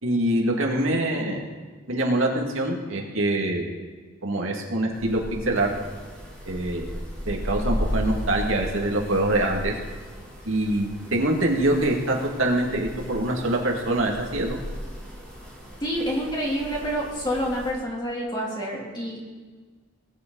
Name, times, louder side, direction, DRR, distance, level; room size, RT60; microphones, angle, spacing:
voice 1, 0.0-1.4 1.9-3.7 4.2-5.7 6.5-9.7 10.5-14.6, right 1 dB, 75° right, 0 dB, 2.1 m, -24 dB
sound 1, 4.9-17.7, equal, 5° left, 3.2 m, -35 dB
voice 2, 15.8-19.2, equal, 20° left, -3 dB, 2.9 m, -28 dB
19.5 x 9.4 x 4.0 m, 1.4 s
head